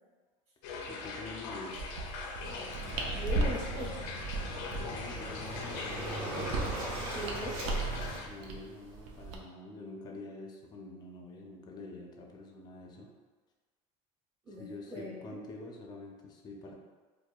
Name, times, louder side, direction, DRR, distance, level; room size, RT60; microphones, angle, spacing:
sound 1, 0.6-8.3, left 4 dB, 85° left, 0.5 m, -42 dB
voice 1, 0.9-1.8 4.8-6.2 8.3-13.1 14.6-16.7, left 2 dB, 25° left, 1 dB, 0.4 m, -46 dB
sound 2, 1.7-9.4, right 3 dB, 80° right, 0.5 m, -37 dB
Waves surf, 2.4-8.2, right 1 dB, 55° right, 1.1 m, -40 dB
voice 2, 3.1-3.9 7.1-7.6 14.4-15.2, equal, 15° right, -10 dB, 0.7 m, -40 dB
4.7 x 2.1 x 2.3 m, 1.4 s
cardioid pair, 150°, 16 cm